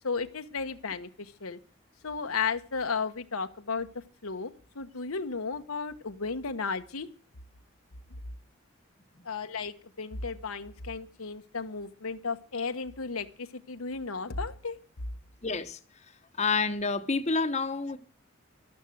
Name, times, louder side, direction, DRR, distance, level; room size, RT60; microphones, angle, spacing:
voice 1, 0.0-1.6 2.0-3.9 4.2-7.1 9.2-14.8, left 5 dB, 85° left, 1.1 m, -34 dB
voice 2, 15.4-15.8 16.4-18.0, left 4 dB, 30° left, 1.0 m, -28 dB
13.0 x 12.5 x 7.8 m
head